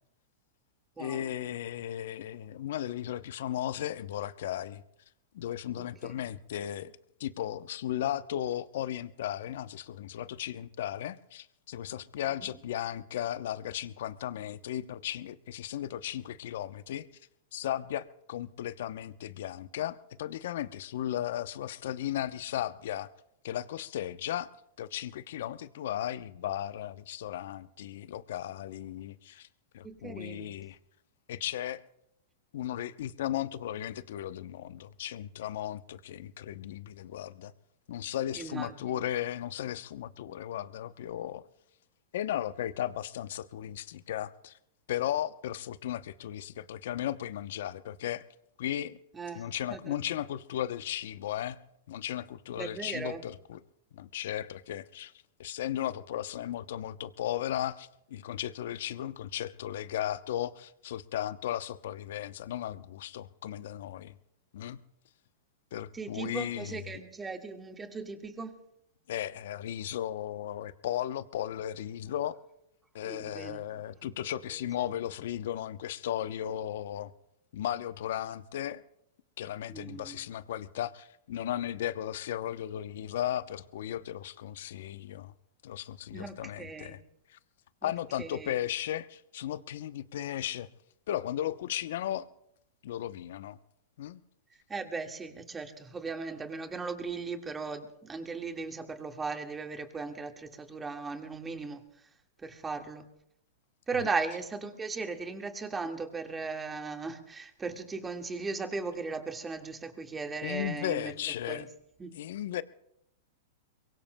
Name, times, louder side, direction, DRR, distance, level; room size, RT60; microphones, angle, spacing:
voice 1, 1.0-4.8 5.3-6.9 7.2-17.0 17.5-23.1 23.4-24.5 24.8-29.5 29.7-30.8 31.3-31.8 32.5-37.5 37.9-41.4 42.1-44.6 44.9-48.2 48.6-49.0 49.3-51.6 51.9-53.6 53.9-55.1 55.4-64.2 64.5-64.8 65.7-66.8 69.1-72.4 72.9-77.1 77.5-78.8 79.4-85.3 85.6-87.0 87.3-87.4 87.8-90.7 91.1-92.3 92.8-93.6 94.0-94.2 104.0-104.1 110.4-111.7 112.1-112.6, left 11 dB, 70° left, 0.8 m, -35 dB
voice 2, 29.8-30.6 38.4-38.9 49.1-50.0 52.6-53.2 65.9-68.6 73.0-74.1 74.5-74.9 79.7-80.2 86.1-87.0 87.8-88.5 94.7-101.8 102.4-103.1 103.9-111.1 111.5-111.6 112.0-112.2, right 4 dB, 15° right, 1.8 m, -38 dB
23.5 x 22.5 x 2.3 m
hypercardioid pair, 115°, 0 cm